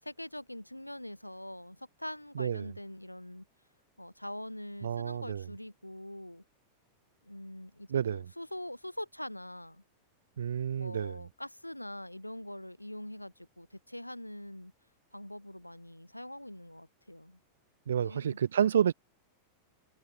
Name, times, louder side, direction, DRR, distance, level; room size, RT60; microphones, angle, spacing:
voice 1, 0.0-3.5 4.0-6.4 7.2-9.8 10.7-14.7 15.1-17.4 18.0-18.4, left 1 dB, 90° left, 7.9 m, -43 dB
voice 2, 2.3-2.7 4.8-5.4 7.9-8.3 10.4-11.3 17.9-18.9, right 9 dB, 65° right, 1.1 m, -30 dB
figure-of-eight pair, 90°, 0 cm